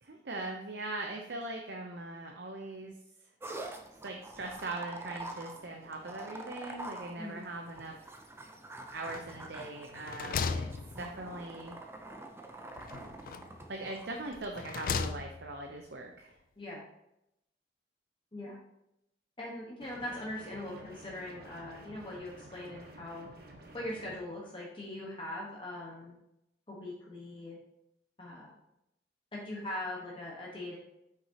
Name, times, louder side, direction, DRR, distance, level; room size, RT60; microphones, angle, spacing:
voice 1, 0.0-2.9 4.0-8.0 8.9-10.7 11.0-11.8 13.7-16.4, right 2 dB, 70° right, 2 dB, 0.8 m, -41 dB
sound 1, 3.4-14.3, right 2 dB, 15° right, 0.6 m, -46 dB
sound 2, 9.1-9.6 9.9-11.5 12.8-13.6 14.3-15.6, left 5 dB, 50° left, 0.3 m, -37 dB
voice 2, 19.4-23.3 23.7-26.1 26.7-27.6 28.2-28.5 29.3-30.8, left 1 dB, 30° left, -5 dB, 1.3 m, -41 dB
sound 3, 19.8-24.2, right 1 dB, 55° right, 1.2 m, -52 dB
8.0 x 5.9 x 2.9 m, 0.83 s
head